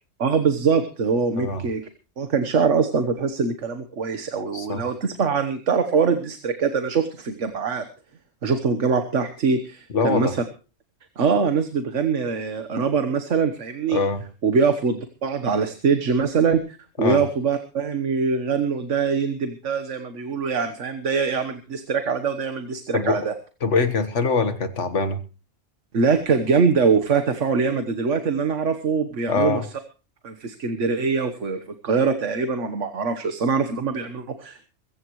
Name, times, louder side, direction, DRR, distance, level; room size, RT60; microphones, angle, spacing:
voice 1, 0.2-1.8 2.2-7.8 8.4-10.4 11.2-14.0 14.4-23.3 25.9-29.6 30.2-34.7, right 5 dB, 70° right, 8 dB, 1.6 m, -23 dB
voice 2, 9.9-10.4 13.9-14.2 17.0-17.2 22.9-23.2 23.6-25.2 29.3-29.6, left 4 dB, 65° left, 10 dB, 1.8 m, -23 dB
22.5 x 15.0 x 3.1 m, 0.35 s
omnidirectional pair, 1.3 m